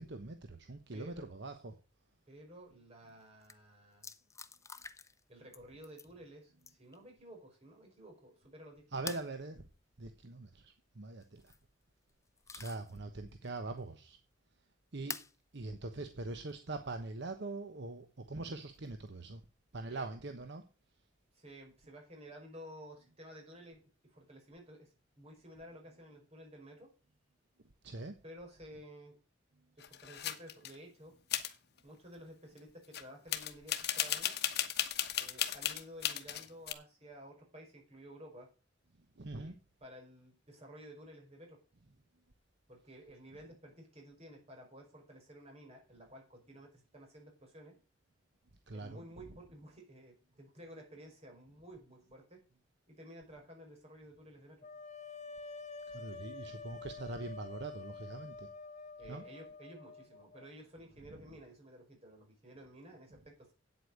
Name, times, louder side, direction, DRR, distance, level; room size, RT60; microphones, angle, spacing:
voice 1, 0.0-1.8 8.9-9.7 10.0-11.5 12.5-14.2 14.9-15.2 15.5-19.4 19.7-20.6 27.8-28.2 39.2-39.5 48.7-49.0 55.9-58.5 59.1-59.2, right 2 dB, 65° right, 1.1 m, -43 dB
voice 2, 0.9-1.3 2.3-4.1 5.3-9.0 19.8-20.1 21.3-23.8 24.1-26.9 28.2-29.2 29.8-31.1 31.8-34.4 35.2-38.5 39.3-39.6 39.8-41.6 42.7-47.7 48.7-52.4 52.9-54.7 59.0-63.5, equal, 35° right, 5.6 m, -53 dB
sound 1, 3.1-3.2 3.4-3.6 4.0-5.2 5.5-6.1 6.6-7.0 9.1-9.3 11.2-11.6 12.1-13.0 13.4-13.5 15.1-15.4 16.5-16.6 18.6-19.1, left 5 dB, 15° left, 0.6 m, -46 dB
sound 2, 29.8-30.8 31.3-31.5 32.9-33.0 33.3-36.7, left 11 dB, 60° left, 1.1 m, -35 dB
sound 3, 54.6-60.5, left 4 dB, 40° left, 0.9 m, -48 dB
9.0 x 8.1 x 6.5 m
head